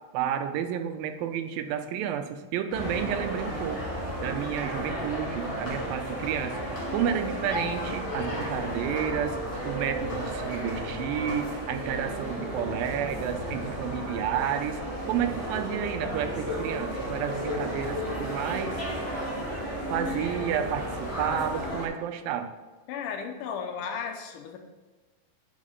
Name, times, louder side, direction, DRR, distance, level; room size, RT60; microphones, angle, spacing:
voice 1, 0.1-3.8 4.2-6.5 6.9-9.4 9.6-14.8 15.1-18.8 19.9-22.5, right 9 dB, 90° right, 8 dB, 2.4 m, -31 dB
sound 1, 2.7-21.9, equal, 30° left, 0.6 m, -33 dB
voice 2, 22.9-24.6, left 6 dB, 80° left, 4 dB, 2.1 m, -34 dB
5.7 x 5.0 x 5.4 m, 1.3 s
omnidirectional pair, 4.0 m